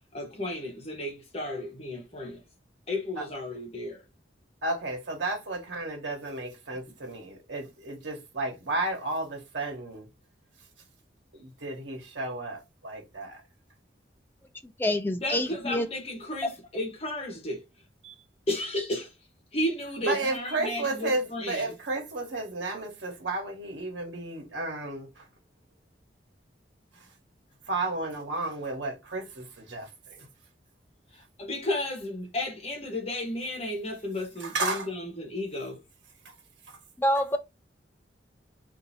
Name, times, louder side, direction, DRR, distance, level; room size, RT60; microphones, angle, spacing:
voice 1, 0.1-2.4 2.9-4.0 15.2-17.6 18.5-19.1 19.5-21.8 31.1-35.8, left 1 dB, 35° left, 1.1 m, -33 dB
voice 2, 4.6-10.0 11.3-13.4 18.0-18.1 20.1-25.1 27.7-29.9 30.2-30.3 34.4-34.8, right 2 dB, 80° right, 1.2 m, -32 dB
voice 3, 14.8-15.9 37.0-37.4, left 1 dB, 10° left, 0.4 m, -26 dB
2.7 x 2.6 x 4.0 m
head